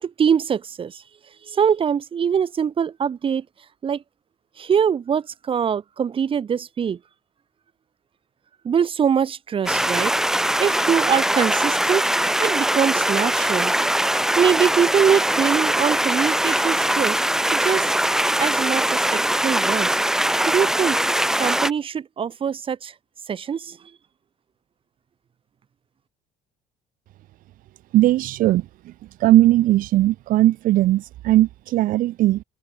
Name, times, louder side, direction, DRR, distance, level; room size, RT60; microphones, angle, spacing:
voice 1, 0.0-1.0 1.5-3.4 3.8-4.0 4.6-7.0 8.6-10.1 10.6-12.1 12.4-13.7 14.4-17.2 17.5-17.9 18.4-20.0 20.5-21.0 21.4-22.9 23.3-23.8, right 7 dB, 35° right, 4.7 m, -23 dB
sound 1, 9.7-21.7, right 1 dB, 5° right, 0.8 m, -21 dB
voice 2, 27.9-28.9 29.2-32.4, right 15 dB, 65° right, 1.7 m, -18 dB
cardioid pair, 120°, 15 cm